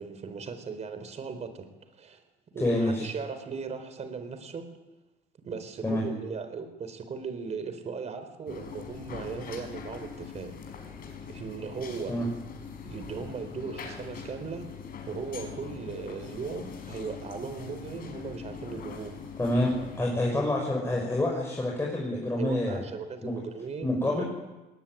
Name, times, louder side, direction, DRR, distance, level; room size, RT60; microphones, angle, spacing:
voice 1, 0.0-1.7 2.0-2.2 2.5-4.7 5.4-10.5 11.3-12.2 12.8-14.7 15.1-19.2 22.4-24.2, right 5 dB, 40° right, 9 dB, 4.1 m, -37 dB
voice 2, 2.6-3.1 5.8-6.0 12.1-12.3 19.4-22.8 23.2-23.3 23.8-24.2, left 1 dB, 15° left, -2 dB, 5.9 m, -27 dB
sound 1, 8.5-20.0, left 6 dB, 60° left, 5.6 m, -42 dB
20.5 x 20.0 x 9.3 m, 1.1 s
cardioid pair, 110°, 17 cm